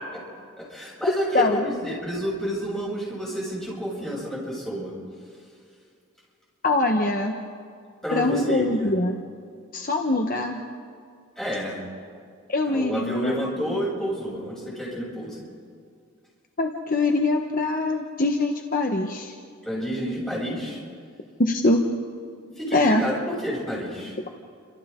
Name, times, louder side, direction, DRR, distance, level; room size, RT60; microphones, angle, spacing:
voice 1, 0.6-4.9 8.0-8.9 11.4-11.8 12.6-15.4 19.6-20.8 22.6-24.2, equal, ahead, -6 dB, 7.7 m, -30 dB
voice 2, 6.6-7.4 8.1-9.1 9.7-10.6 12.5-13.8 16.6-19.3 21.4-21.8 22.7-23.0, left 2 dB, 40° left, 3 dB, 1.2 m, -23 dB
30.0 x 26.5 x 3.8 m, 2.2 s
head